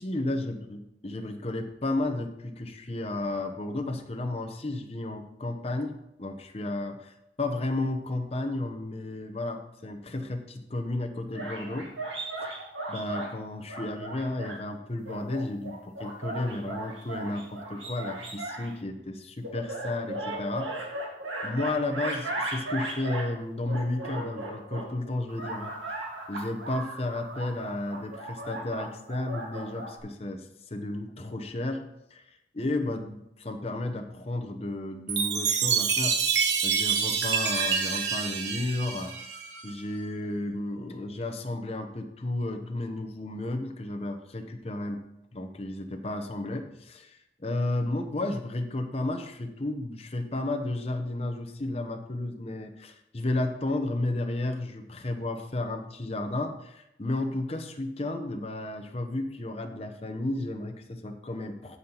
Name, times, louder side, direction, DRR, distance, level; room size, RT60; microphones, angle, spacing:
voice 1, 0.0-11.9 12.4-12.6 12.9-20.8 21.4-31.8 32.1-36.2 36.6-39.1 39.6-45.0 45.3-61.8, left 2 dB, 35° left, 5 dB, 0.8 m, -33 dB
sound 1, 11.3-13.3 13.7-14.6 15.1-18.7 19.4-23.3 23.7-24.9 25.3-30.0, right 2 dB, 90° right, 1.9 m, -36 dB
Chime, 35.1-39.7, right 6 dB, 70° right, 1.0 m, -27 dB
14.5 x 5.5 x 3.0 m, 0.84 s
head